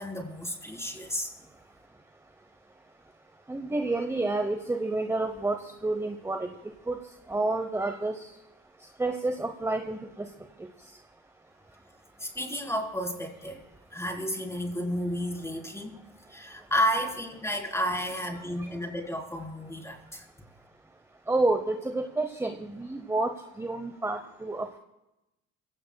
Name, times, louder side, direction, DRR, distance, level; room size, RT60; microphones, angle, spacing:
voice 1, 0.0-1.4 12.2-13.6 13.9-16.0 16.3-20.2, equal, 10° left, 0 dB, 3.8 m, -32 dB
voice 2, 3.5-6.5 6.9-7.0 7.3-8.3 9.0-10.3 18.6-18.7 21.3-24.8, right 2 dB, 10° right, 7 dB, 0.9 m, -29 dB
23.0 x 16.5 x 2.3 m, 0.94 s
cardioid pair, 90°, 30 cm